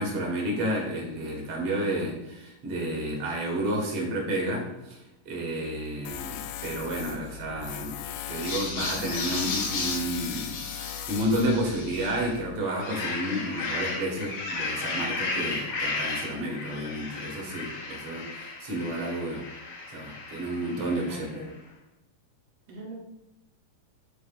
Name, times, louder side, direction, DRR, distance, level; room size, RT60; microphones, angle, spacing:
voice 1, 0.0-8.0 8.3-19.5 19.9-21.4, right 1 dB, 50° right, -2 dB, 2.3 m, -31 dB
Tools, 6.0-12.6, left 11 dB, 80° left, 2.0 m, -38 dB
sound 1, 8.3-12.2 12.6-21.3, left 3 dB, 60° left, 1.7 m, -34 dB
voice 2, 20.7-21.6 22.7-23.0, right 1 dB, 65° right, -4 dB, 1.4 m, -42 dB
10.0 x 4.3 x 2.5 m, 0.94 s
omnidirectional pair, 3.7 m